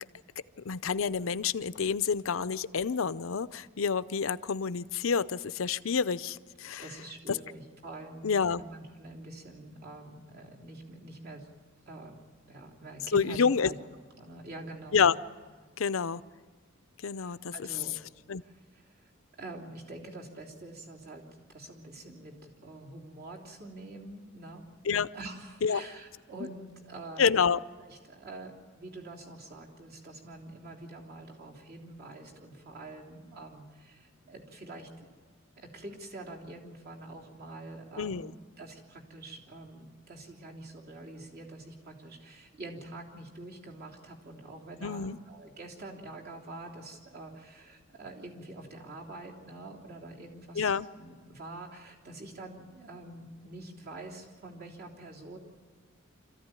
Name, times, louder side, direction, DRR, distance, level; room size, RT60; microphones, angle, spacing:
voice 1, 0.7-6.8 7.3-7.4 8.2-8.6 13.1-13.7 14.9-15.1 15.8-16.2 17.0-17.5 18.3-18.4 24.9-25.1 25.6-25.8 27.2-27.6 38.0-38.3 44.8-45.2 50.6-50.9, left 6 dB, 80° left, 15 dB, 0.6 m, -28 dB
voice 2, 6.8-11.5 11.9-12.2 12.5-13.8 14.2-15.0 17.1-17.9 18.4-19.1 19.4-21.2 21.5-24.6 25.1-27.3 27.8-35.1 35.6-55.4, right 2 dB, 50° right, -1 dB, 3.3 m, -46 dB
26.5 x 14.5 x 9.8 m, 1.5 s
head